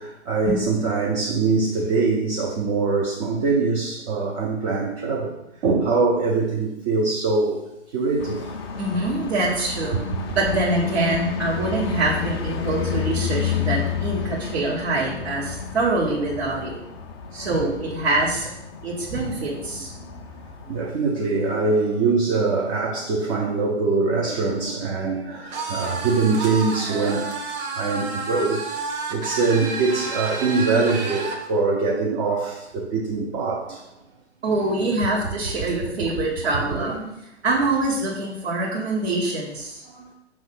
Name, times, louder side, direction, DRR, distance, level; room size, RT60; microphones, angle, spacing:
voice 1, 0.0-7.7 7.9-8.5 9.9-10.0 17.3-17.5 20.0-20.1 20.7-27.3 27.8-28.6 29.1-33.9 36.8-36.9 39.9-40.1, right 4 dB, 25° right, -2 dB, 0.6 m, -23 dB
sound 1, 8.2-20.9, left 6 dB, 20° left, 0.4 m, -30 dB
voice 2, 8.8-10.0 10.3-16.8 17.3-18.5 18.8-19.9 34.4-37.0 37.4-39.8, right 2 dB, 60° right, -6 dB, 1.6 m, -24 dB
sound 2, 25.5-31.4, right 3 dB, 40° right, 1.3 m, -30 dB
5.7 x 3.2 x 5.4 m, 0.86 s
figure-of-eight pair, 120°, 35 cm